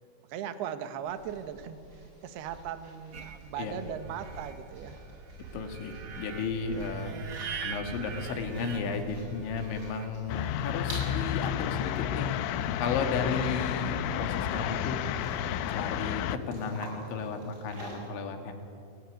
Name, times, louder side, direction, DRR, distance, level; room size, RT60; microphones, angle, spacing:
voice 1, 0.3-1.8 2.2-5.0 6.8-7.6, right 9 dB, 65° right, 9 dB, 3.0 m, -39 dB
sound 1, 1.0-18.0, right 2 dB, 20° right, 7.5 m, -47 dB
sound 2, 3.1-10.1, right 6 dB, 90° right, 1.2 m, -44 dB
voice 2, 5.5-7.1 7.6-12.3 12.8-15.0 15.5-18.5, left 4 dB, 70° left, 5 dB, 4.6 m, -34 dB
sound 3, 10.3-16.4, left 10 dB, 90° left, 3.5 m, -31 dB
28.0 x 20.0 x 9.6 m, 2.5 s
omnidirectional pair, 5.5 m